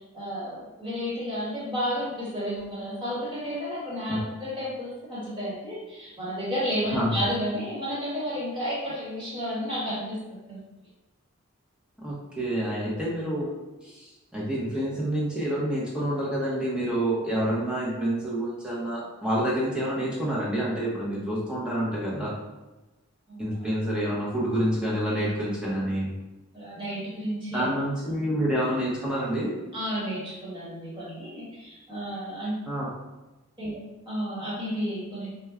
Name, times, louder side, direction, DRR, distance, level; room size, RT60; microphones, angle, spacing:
voice 1, 0.1-10.6 23.3-23.5 26.5-27.6 29.7-32.5 33.6-33.8 34.1-35.3, equal, 20° right, -9 dB, 1.2 m, -32 dB
voice 2, 12.0-13.5 13.8-22.3 23.4-26.1 27.5-29.5 32.7-32.9, right 1 dB, 5° right, -7 dB, 0.7 m, -28 dB
4.3 x 2.2 x 2.4 m, 1.1 s
head